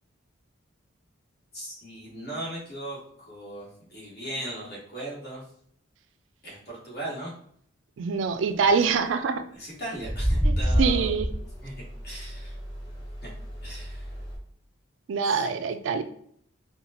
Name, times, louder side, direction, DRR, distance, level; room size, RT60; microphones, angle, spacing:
voice 1, 1.5-5.5 6.4-7.4 9.5-11.2 11.6-12.6 13.2-13.3 13.6-14.1 15.2-15.6, right 1 dB, 55° left, -4 dB, 1.4 m, -38 dB
voice 2, 8.0-9.5 10.4-10.5 10.8-11.3 15.1-16.0, right 5 dB, 70° right, 10 dB, 0.3 m, -24 dB
sound 1, 8.5-8.8 9.9-14.3, equal, 25° left, 1.1 m, -29 dB
4.1 x 2.2 x 2.9 m, 0.64 s
head